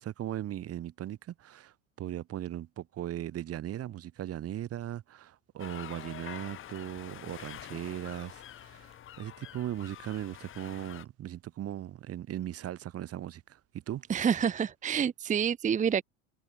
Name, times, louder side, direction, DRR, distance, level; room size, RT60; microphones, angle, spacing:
voice 1, 0.0-13.6 13.9-14.0, right 12 dB, 40° right, 1.7 m, -38 dB
sound 1, 5.6-11.0, left 11 dB, 35° left, 1.1 m, -46 dB
voice 2, 14.1-16.0, right 7 dB, 20° right, 0.8 m, -28 dB
hypercardioid pair, 85°, 37 cm